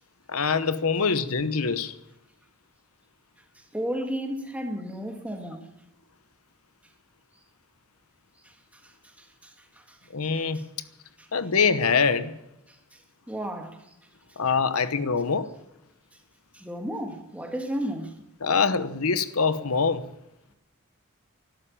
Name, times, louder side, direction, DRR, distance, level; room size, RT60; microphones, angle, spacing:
voice 1, 0.3-1.9 10.1-10.6 11.3-12.3 14.4-15.5 18.4-20.0, left 5 dB, 85° left, 1.0 m, -24 dB
voice 2, 3.6-5.7 8.4-10.0 10.4-10.6 11.2-11.3 12.7-13.0 13.3-13.9 16.5-18.2, equal, 5° right, 1.9 m, -34 dB
12.5 x 12.0 x 8.7 m
head